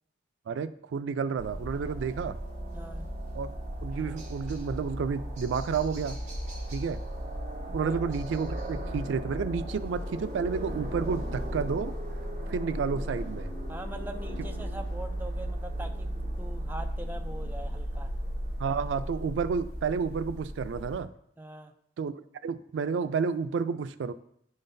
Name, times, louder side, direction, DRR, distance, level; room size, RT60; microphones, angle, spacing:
voice 1, 0.5-2.4 3.4-3.5 3.8-6.2 6.7-7.0 7.7-11.9 12.5-13.5 18.6-21.1 22.0-22.1 22.4-24.1, right 5 dB, 90° right, 13 dB, 0.3 m, -31 dB
sound 1, 1.4-21.0, equal, 40° right, 1.2 m, -36 dB
voice 2, 2.7-3.1 7.8-8.0 13.7-16.1 16.4-18.1 21.4-21.7, right 1 dB, 10° right, 4 dB, 0.3 m, -42 dB
10.5 x 3.9 x 2.6 m, 0.70 s
head